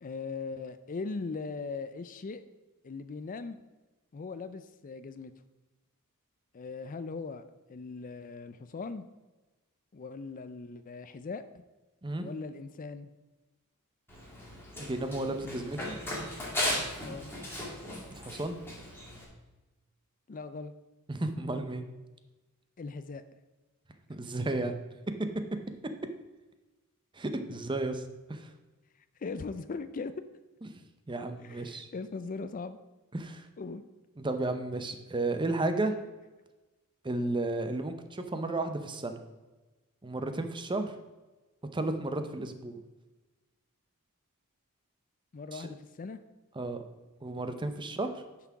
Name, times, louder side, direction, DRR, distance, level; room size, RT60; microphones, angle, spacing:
voice 1, 0.0-2.4 2.8-3.6 4.1-5.3 6.5-7.4 7.7-9.0 9.9-11.4 12.2-13.1 17.0-17.3 20.3-20.7 22.8-23.2 29.2-30.1 31.4-32.8 33.6-33.8 45.3-46.2, left 4 dB, 35° left, 11 dB, 0.4 m, -39 dB
Run, 14.1-19.2, left 1 dB, 10° left, 2.5 m, -37 dB
voice 2, 14.8-16.0 18.1-18.6 21.1-21.9 24.1-24.7 27.1-28.0 28.3-28.5 31.1-31.9 33.1-33.5 34.2-35.9 37.0-39.2 40.0-40.9 41.7-42.8 45.5-45.7 46.6-46.8 47.2-48.2, right 2 dB, 20° right, 8 dB, 0.7 m, -33 dB
9.8 x 5.9 x 4.7 m, 1.2 s
head